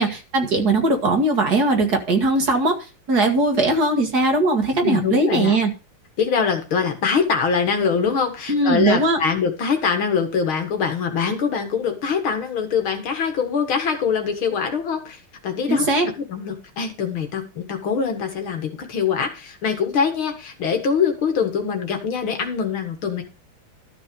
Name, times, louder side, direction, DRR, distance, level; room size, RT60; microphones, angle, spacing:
voice 1, 0.0-5.7 8.5-9.2 15.7-16.1, right 2 dB, 50° right, 4 dB, 2.1 m, -20 dB
voice 2, 4.8-5.6 6.2-15.9 16.3-23.2, left 6 dB, 70° left, 5 dB, 2.6 m, -23 dB
13.0 x 5.8 x 5.3 m, 0.32 s
omnidirectional pair, 2.4 m